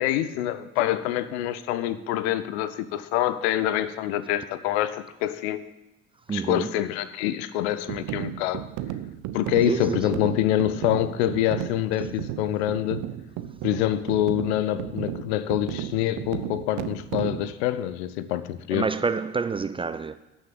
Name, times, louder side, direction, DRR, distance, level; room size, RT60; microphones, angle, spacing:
voice 1, 0.0-5.6 6.3-8.6 9.3-13.0 13.6-18.9, left 12 dB, 65° left, 0.7 m, -26 dB
voice 2, 6.3-6.8 9.7-10.3 18.7-20.2, right 5 dB, 15° right, 0.4 m, -28 dB
sound 1, 7.9-17.5, right 12 dB, 55° right, 0.7 m, -34 dB
12.0 x 6.3 x 7.0 m
figure-of-eight pair, 55°, 36 cm